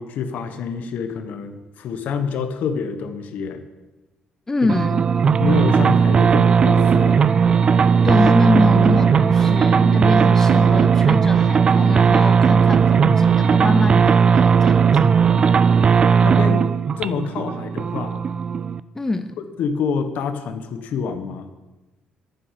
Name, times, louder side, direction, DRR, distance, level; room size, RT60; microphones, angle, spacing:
voice 1, 0.0-3.6 5.4-7.2 16.2-18.2 19.6-21.5, left 6 dB, 70° left, 8 dB, 1.2 m, -27 dB
voice 2, 4.5-5.1 8.0-15.1 18.9-19.4, left 2 dB, 15° left, 9 dB, 0.5 m, -24 dB
sound 1, 4.7-18.8, right 6 dB, 35° right, 0.3 m, -16 dB
9.9 x 9.5 x 5.9 m, 1.1 s
cardioid pair, 125°, 3 cm